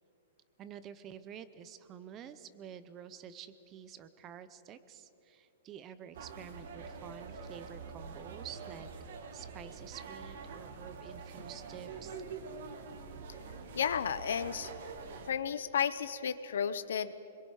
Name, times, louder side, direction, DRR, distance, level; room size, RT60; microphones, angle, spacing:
voice 1, 0.6-8.9 9.3-12.2, right 8 dB, 15° right, 13 dB, 0.5 m, -49 dB
sound 1, 6.1-15.3, right 5 dB, 50° right, 1.5 m, -45 dB
voice 2, 13.7-14.8 15.3-17.1, left 8 dB, 70° left, 14 dB, 0.8 m, -33 dB
24.5 x 22.5 x 4.8 m, 2.9 s
hypercardioid pair, 175°, 0 cm